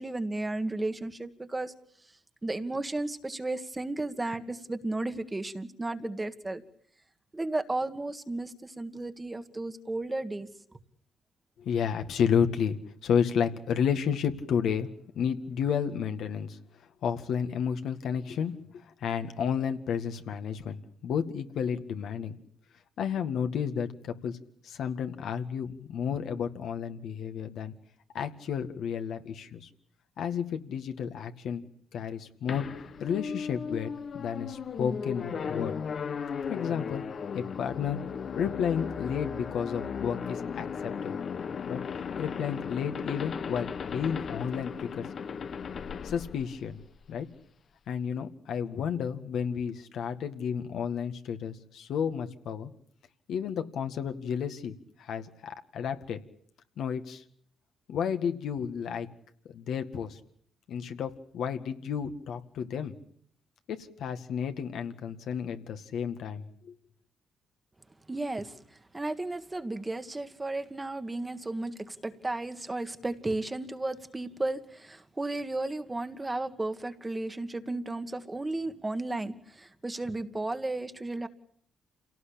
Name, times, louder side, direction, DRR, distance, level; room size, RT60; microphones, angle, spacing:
voice 1, 0.0-1.7 2.4-6.6 7.3-10.5 68.1-68.6 68.9-81.3, right 2 dB, 20° right, 9 dB, 1.7 m, -34 dB
voice 2, 11.6-16.6 17.0-22.4 23.0-24.4 24.6-27.7 28.1-29.7 30.2-31.6 31.9-32.7 33.0-35.8 36.4-37.0 37.3-38.0 38.4-41.1 41.6-41.8 42.2-45.1 46.0-46.8 47.1-47.3 47.9-52.7 53.3-56.2 56.8-57.2 57.9-59.1 59.5-60.2 60.7-62.9 63.7-66.7, left 7 dB, 75° left, 7 dB, 2.0 m, -32 dB
sound 1, 32.5-47.2, left 6 dB, 50° left, 1.2 m, -36 dB
27.5 x 18.0 x 8.7 m, 0.65 s
cardioid pair, 90°, 0 cm